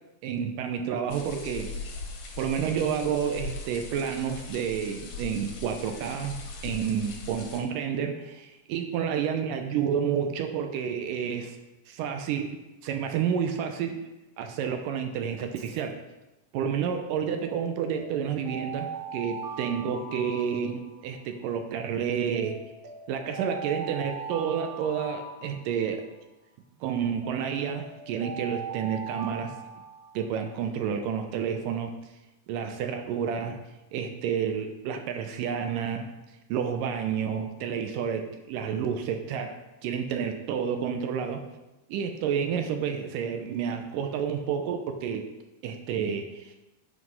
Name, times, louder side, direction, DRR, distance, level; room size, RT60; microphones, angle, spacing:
voice 1, 0.2-1.7 2.4-11.6 11.9-12.5 12.8-14.0 14.4-16.0 16.5-22.6 23.1-26.0 26.8-29.5 30.1-32.0 32.5-33.6 33.9-36.1 36.5-41.5 41.9-45.3 45.6-46.5, right 7 dB, 80° right, 6 dB, 2.3 m, -30 dB
sound 1, 1.1-7.6, left 3 dB, 65° left, 2.6 m, -40 dB
Alarm, 15.4-15.8 17.5-21.2 22.4-26.1 27.2-30.5, right 5 dB, 60° right, 2.2 m, -40 dB
7.9 x 5.6 x 5.5 m, 1.0 s
omnidirectional pair, 4.0 m